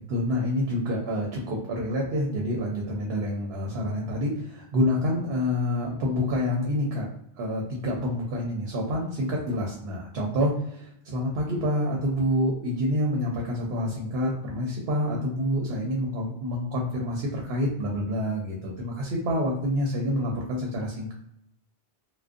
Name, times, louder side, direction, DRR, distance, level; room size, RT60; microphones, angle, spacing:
voice 1, 0.1-7.1 7.4-21.1, left 1 dB, 75° right, -1 dB, 0.8 m, -27 dB
2.4 x 2.1 x 2.4 m, 0.75 s
omnidirectional pair, 1.1 m